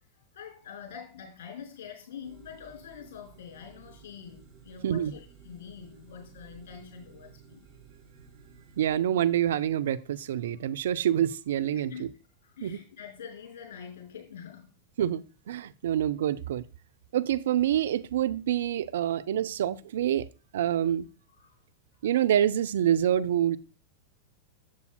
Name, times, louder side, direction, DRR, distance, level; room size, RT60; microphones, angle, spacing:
voice 1, 0.1-7.6 11.7-12.1 12.4-14.8 21.3-21.6 21.9-22.0, left 7 dB, 55° left, 5.1 m, -45 dB
sound 1, 2.2-9.0, right 6 dB, 35° right, 4.5 m, -54 dB
voice 2, 8.8-12.1 12.6-12.8 15.0-16.6 17.1-20.3 20.5-21.1 22.0-23.6, right 10 dB, 60° right, 0.4 m, -26 dB
13.5 x 8.1 x 2.2 m
figure-of-eight pair, 90°, 0 cm